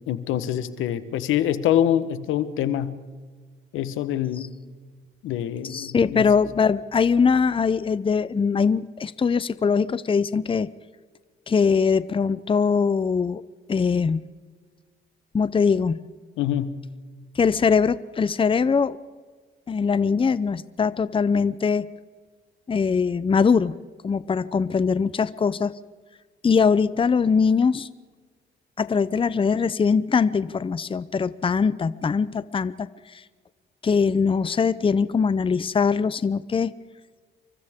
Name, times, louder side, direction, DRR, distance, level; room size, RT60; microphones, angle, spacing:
voice 1, 0.1-2.9 3.7-4.5 5.2-6.3 16.4-16.7, left 11 dB, 90° left, 12 dB, 1.2 m, -25 dB
voice 2, 5.6-10.7 11.5-13.4 13.7-14.2 15.3-16.0 17.4-19.0 19.7-21.9 22.7-23.8 24.0-25.7 26.4-27.9 28.8-32.9 33.8-36.7, left 5 dB, 25° left, 16 dB, 0.7 m, -22 dB
29.0 x 24.0 x 3.7 m, 1.5 s
cardioid pair, 90°, 20 cm